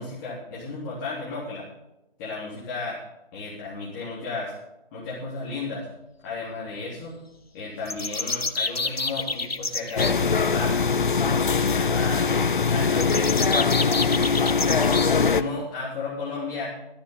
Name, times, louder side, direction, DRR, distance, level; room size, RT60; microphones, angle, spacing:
voice 1, 0.0-1.7 2.2-3.0 3.3-4.5 4.9-5.8 6.2-7.1 7.5-10.8 11.5-12.3 12.7-13.4 14.2-16.7, left 3 dB, 20° left, -7 dB, 3.9 m, -34 dB
sound 1, 7.9-10.1 12.9-15.1, left 3 dB, 90° left, 1.3 m, -28 dB
sound 2, 10.0-15.4, left 5 dB, 55° left, 0.9 m, -22 dB
17.5 x 13.5 x 4.0 m, 0.97 s
figure-of-eight pair, 145°, 29 cm